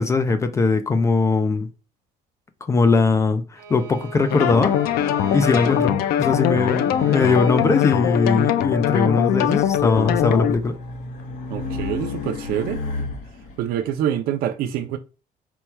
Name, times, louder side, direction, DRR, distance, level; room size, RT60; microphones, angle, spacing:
voice 1, 0.0-1.7 2.7-4.7 5.3-10.7, left 4 dB, 20° left, 0.3 m, -20 dB
Bowed string instrument, 3.6-8.6, right 1 dB, 55° right, 0.8 m, -38 dB
sound 1, 4.3-10.5, left 10 dB, 80° left, 0.5 m, -21 dB
Race car auto racing, 9.4-13.6, left 3 dB, 60° left, 1.0 m, -32 dB
voice 2, 11.5-12.8 13.6-15.0, right 10 dB, 80° right, 0.5 m, -25 dB
4.5 x 2.3 x 4.2 m
cardioid pair, 175°, 15 cm